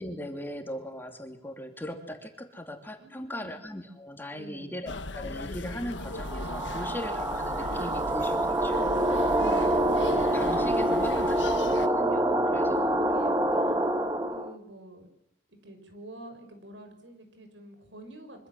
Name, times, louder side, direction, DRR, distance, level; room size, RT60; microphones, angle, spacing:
voice 1, 0.0-9.3 10.1-13.1, left 1 dB, 10° left, 4 dB, 2.8 m, -39 dB
voice 2, 3.0-3.5 4.3-4.8 9.3-9.8 12.3-13.9 14.3-15.1 15.5-18.5, right 1 dB, 80° right, 6 dB, 6.3 m, -47 dB
sound 1, 4.9-11.9, left 2 dB, 75° left, 1.4 m, -38 dB
sound 2, 6.1-14.5, right 1 dB, 15° right, 1.3 m, -26 dB
25.5 x 25.0 x 7.7 m, 0.76 s
head